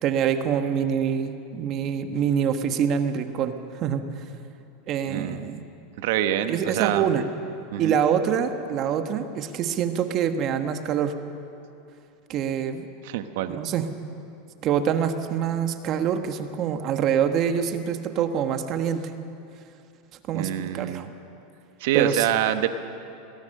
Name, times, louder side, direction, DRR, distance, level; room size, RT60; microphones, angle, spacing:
voice 1, 0.0-4.0 4.9-5.6 6.5-7.2 7.8-11.1 12.3-12.8 13.5-13.9 14.6-19.1 20.3-21.1 21.9-22.3, right 8 dB, 45° right, 8 dB, 1.3 m, -25 dB
voice 2, 5.1-5.6 6.0-7.1 7.7-8.0 13.0-13.6 20.3-21.1 21.8-22.7, right 11 dB, 70° right, 9 dB, 1.3 m, -26 dB
22.5 x 18.5 x 6.6 m, 2.7 s
supercardioid pair, 125°, 0 cm